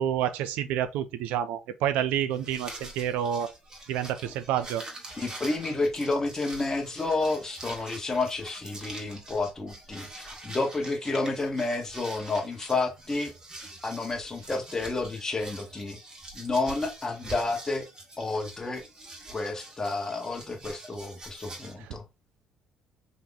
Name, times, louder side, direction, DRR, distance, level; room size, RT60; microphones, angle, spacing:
voice 1, 0.0-3.5 3.9-4.8, right 10 dB, 85° right, 0.4 m, -28 dB
sound 1, 2.3-21.7, right 2 dB, 30° right, 1.7 m, -45 dB
voice 2, 5.2-13.3 13.8-16.0 16.3-17.9 18.2-18.8 19.3-22.0, left 3 dB, 20° left, 1.1 m, -30 dB
3.5 x 2.9 x 3.9 m
cardioid pair, 100°, 3 cm